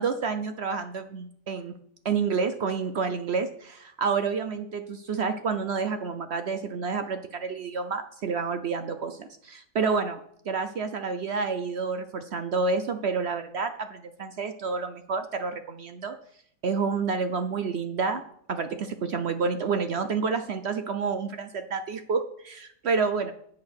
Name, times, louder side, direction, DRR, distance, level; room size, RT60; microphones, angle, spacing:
voice 1, 0.0-1.7 2.0-10.2 10.5-16.1 16.6-18.2 18.5-23.3, right 5 dB, 65° right, 8 dB, 0.6 m, -29 dB
8.3 x 7.5 x 6.2 m, 0.68 s
omnidirectional pair, 1.8 m